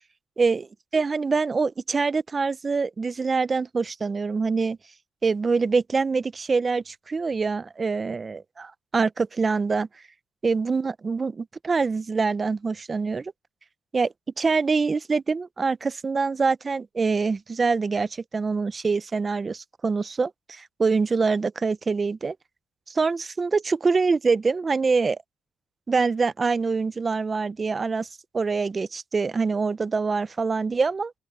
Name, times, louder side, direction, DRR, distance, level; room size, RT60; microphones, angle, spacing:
voice 1, 0.9-4.8 5.2-9.9 10.4-13.3 13.9-22.4 22.9-25.2 25.9-28.1 28.3-31.1, right 4 dB, 30° right, 0.7 m, -25 dB
open air
cardioid pair, 90°, 0 cm